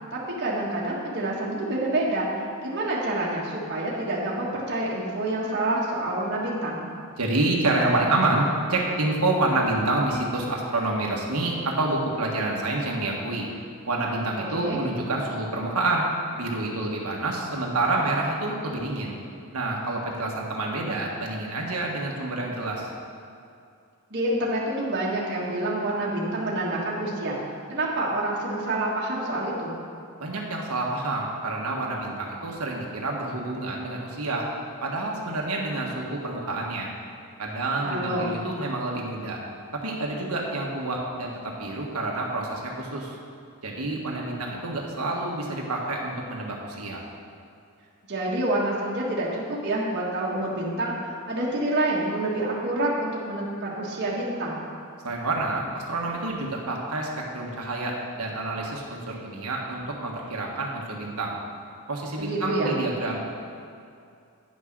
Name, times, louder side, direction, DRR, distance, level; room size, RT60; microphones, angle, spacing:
voice 1, 0.1-2.3 2.6-6.8 14.5-14.8 24.1-27.4 27.7-29.7 37.8-38.3 48.1-54.6 62.2-62.8, right 1 dB, 50° right, -5 dB, 1.6 m, -27 dB
voice 2, 7.2-13.5 13.9-16.0 16.4-19.2 19.5-22.9 30.2-34.5 34.8-36.9 37.4-39.4 39.7-43.2 43.6-47.0 55.0-61.3 61.9-63.2, right 2 dB, 85° right, -1 dB, 1.5 m, -28 dB
10.0 x 6.4 x 6.0 m, 2.5 s
head